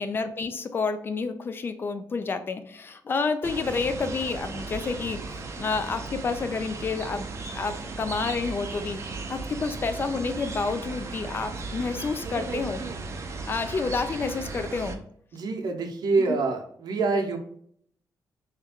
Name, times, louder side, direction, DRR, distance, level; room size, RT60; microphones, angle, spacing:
voice 1, 0.0-5.2 5.6-7.3 7.5-9.0 9.3-12.8 13.5-15.0 16.3-16.4, left 4 dB, 30° left, 9 dB, 0.4 m, -29 dB
sound 1, 3.4-15.0, right 3 dB, 40° right, 0.6 m, -36 dB
voice 2, 15.3-17.4, right 3 dB, 70° right, 3 dB, 0.8 m, -26 dB
3.4 x 3.1 x 3.5 m, 0.64 s
wide cardioid pair, 160°, 7 cm